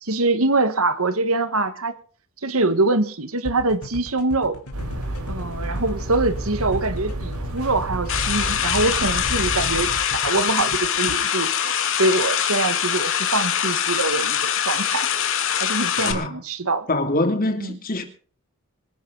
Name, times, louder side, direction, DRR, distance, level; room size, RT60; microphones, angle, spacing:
voice 1, 0.0-1.9 2.4-4.6 5.3-11.7 12.0-15.1 15.6-16.9 17.6-17.8, right 2 dB, 65° right, 1.7 m, -24 dB
sound 1, 3.5-11.2, left 1 dB, 85° left, 3.4 m, -37 dB
sound 2, 4.7-10.0, right 1 dB, 85° right, 6.7 m, -30 dB
sound 3, 8.1-16.1, left 8 dB, 60° left, 2.4 m, -23 dB
voice 2, 16.0-16.4 16.9-18.0, left 2 dB, 40° left, 2.9 m, -24 dB
26.0 x 10.5 x 4.0 m
head